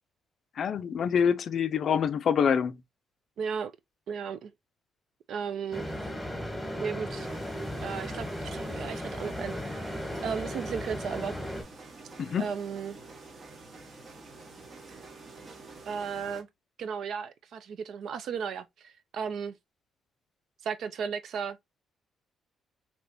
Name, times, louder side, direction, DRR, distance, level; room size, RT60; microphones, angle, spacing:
voice 1, 0.6-2.8 12.2-12.5, left 7 dB, 60° left, 0.4 m, -26 dB
voice 2, 3.4-3.7 4.1-4.5 5.3-6.1 6.8-7.3 7.8-11.4 12.4-13.0 14.9-15.0 15.9-16.5 16.8-19.5 20.6-21.6, right 6 dB, 70° right, 0.5 m, -35 dB
sound 1, 5.7-11.6, equal, 5° left, 1.2 m, -36 dB
sound 2, 7.2-16.4, right 3 dB, 45° right, 1.0 m, -48 dB
3.3 x 2.9 x 2.5 m
cardioid pair, 90°, 0 cm